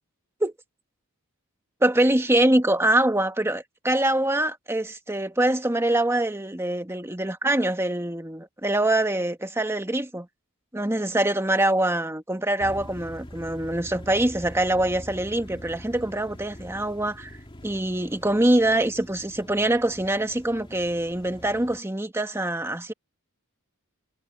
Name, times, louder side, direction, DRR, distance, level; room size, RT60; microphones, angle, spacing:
voice 1, 1.8-10.3 10.7-17.4 17.6-22.9, right 1 dB, 10° right, 1.5 m, -24 dB
sound 1, 12.6-21.8, equal, 25° left, 2.7 m, -44 dB
head